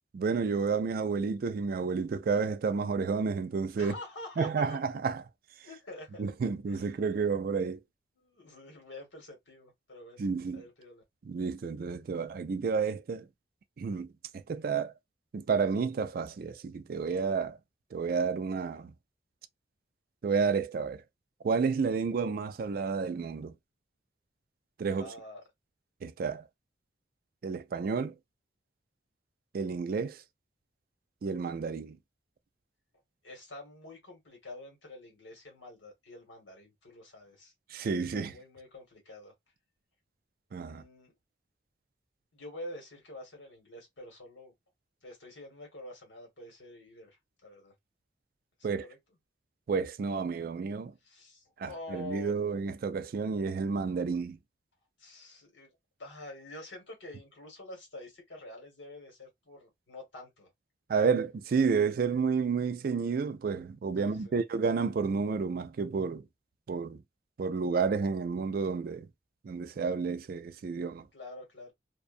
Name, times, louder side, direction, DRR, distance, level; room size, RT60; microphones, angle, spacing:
voice 1, 0.1-3.9 4.4-5.2 6.2-7.8 10.2-10.6 11.2-13.3 13.8-14.1 14.3-14.9 15.3-17.6 17.9-18.9 20.2-21.0 21.4-23.5 24.8-25.1 26.0-26.4 27.4-28.1 29.5-30.2 31.2-32.0 37.7-38.3 40.5-40.8 48.6-48.8 49.7-50.9 51.6-54.4 60.9-66.3 66.7-67.0 67.4-69.1 69.4-71.1, right 5 dB, 50° right, 0.3 m, -30 dB
voice 2, 3.8-4.8 5.6-6.2 6.7-6.8 8.2-11.0 25.0-25.4 33.2-37.5 38.1-39.3 40.7-41.1 42.3-44.5 45.0-47.2 47.4-47.7 48.7-49.0 51.0-52.4 55.0-55.7 56.0-60.5 64.0-64.4 71.1-71.7, left 1 dB, 85° left, 1.5 m, -47 dB
2.6 x 2.2 x 2.5 m
head